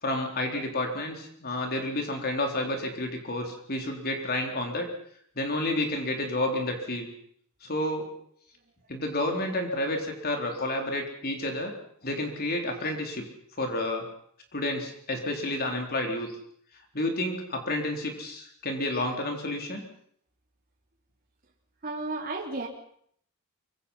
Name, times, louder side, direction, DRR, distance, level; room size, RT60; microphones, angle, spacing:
voice 1, 0.0-4.9 5.4-7.1 7.6-8.1 8.9-11.7 12.0-13.2 13.6-14.1 14.5-16.3 16.9-19.8, left 1 dB, 45° left, 3 dB, 3.9 m, -30 dB
voice 2, 21.8-22.7, right 3 dB, 40° right, -1 dB, 3.7 m, -33 dB
25.0 x 24.5 x 5.7 m, 0.65 s
head